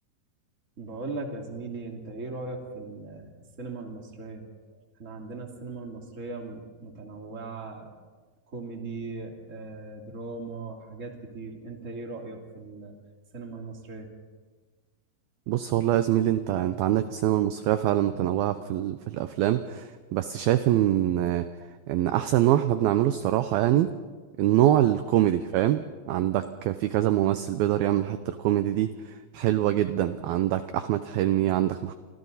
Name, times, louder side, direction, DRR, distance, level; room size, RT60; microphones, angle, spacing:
voice 1, 0.8-3.3 3.6-4.4 5.0-7.9 8.5-12.9 13.3-14.1, right 3 dB, 20° right, 1 dB, 2.2 m, -38 dB
voice 2, 15.5-21.5 21.9-23.9 24.4-28.9 29.3-31.9, right 13 dB, 80° right, 10 dB, 2.2 m, -24 dB
29.5 x 25.0 x 4.1 m, 1.4 s
omnidirectional pair, 5.1 m